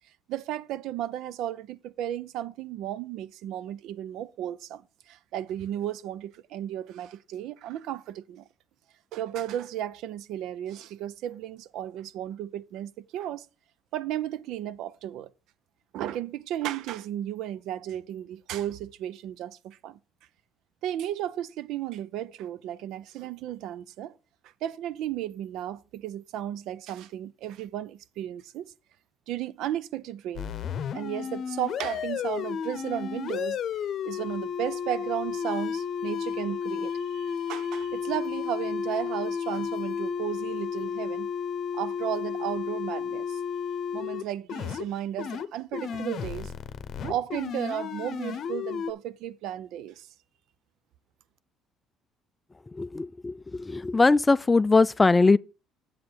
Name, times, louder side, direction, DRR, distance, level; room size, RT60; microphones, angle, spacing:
voice 1, 0.3-8.5 9.1-13.5 13.9-15.3 15.9-20.0 20.8-24.2 24.6-28.7 29.3-30.5 30.9-33.6 34.0-41.3 41.7-43.4 43.9-46.5 47.0-50.1, right 11 dB, 75° right, 0.5 m, -34 dB
sound 1, 30.4-44.2 44.5-44.9 45.2-45.5 45.7-48.9, left 7 dB, 55° left, 0.8 m, -32 dB
voice 2, 52.8-53.3 53.7-55.4, left 3 dB, 20° left, 0.3 m, -20 dB
7.7 x 7.4 x 4.4 m
cardioid pair, 110°, 0 cm